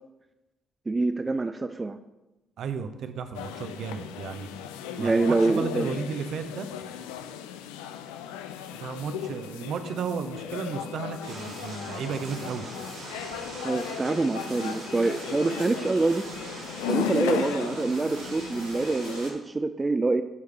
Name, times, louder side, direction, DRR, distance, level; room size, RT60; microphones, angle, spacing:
voice 1, 0.9-2.0 5.0-5.9 13.6-16.3 16.9-20.2, right 3 dB, 25° right, 9 dB, 0.4 m, -26 dB
voice 2, 2.6-4.5 5.0-6.7 8.7-12.7, right 6 dB, 60° right, 8 dB, 0.7 m, -34 dB
sound 1, 3.3-19.3, left 9 dB, 75° left, 0.4 m, -36 dB
sound 2, 11.2-19.3, right 2 dB, 80° right, 2.7 m, -41 dB
12.5 x 4.8 x 3.3 m, 1.0 s
hypercardioid pair, 45°, 0 cm